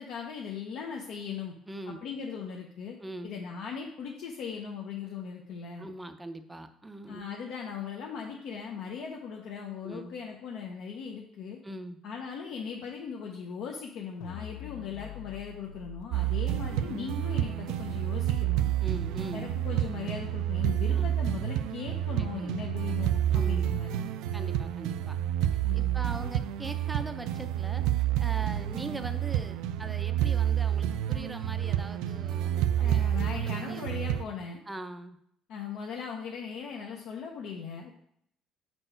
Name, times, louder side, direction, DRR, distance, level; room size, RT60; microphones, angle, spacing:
voice 1, 0.0-1.5 1.9-3.0 3.2-5.9 7.1-11.6 12.0-18.7 19.3-24.1 25.6-26.1 32.8-34.6 35.5-37.9, left 6 dB, 70° left, 0 dB, 0.7 m, -39 dB
voice 2, 1.7-2.0 3.0-3.3 5.8-7.3 9.8-10.1 11.6-12.0 18.8-19.5 20.9-21.3 22.2-22.6 23.3-23.8 24.3-25.2 25.7-27.8 28.2-33.0 33.3-33.9 34.7-35.2, right 1 dB, 10° right, 8 dB, 0.4 m, -41 dB
sound 1, 14.2-16.0, left 11 dB, 85° left, 0.3 m, -43 dB
sound 2, 16.1-34.2, right 11 dB, 90° right, 0.3 m, -29 dB
5.5 x 4.4 x 4.4 m, 0.71 s
cardioid pair, 135°, 0 cm